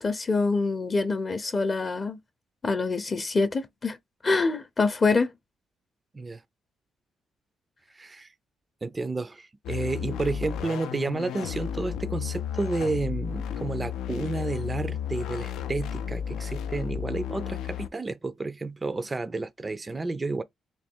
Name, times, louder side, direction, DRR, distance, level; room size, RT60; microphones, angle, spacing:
voice 1, 0.0-2.2 2.6-4.0 4.2-5.3, left 3 dB, 35° left, 0.5 m, -25 dB
voice 2, 7.9-8.3 8.8-20.4, right 3 dB, 25° right, 0.4 m, -31 dB
sound 1, 9.6-17.9, left 9 dB, 85° left, 0.3 m, -33 dB
3.1 x 2.8 x 4.4 m
cardioid pair, 90°, 0 cm